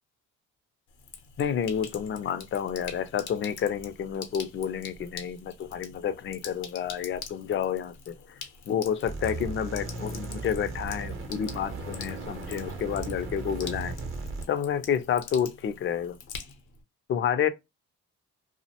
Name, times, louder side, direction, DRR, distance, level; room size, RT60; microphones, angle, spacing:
Sink (filling or washing), 0.9-16.8, left 6 dB, 80° left, 0.7 m, -45 dB
voice 1, 1.4-8.2 8.7-13.9 14.5-16.2 17.1-17.5, left 8 dB, 40° left, 0.4 m, -29 dB
sound 1, 9.0-14.4, right 3 dB, 45° right, 0.7 m, -37 dB
2.4 x 2.1 x 2.8 m
cardioid pair, 90°, 30 cm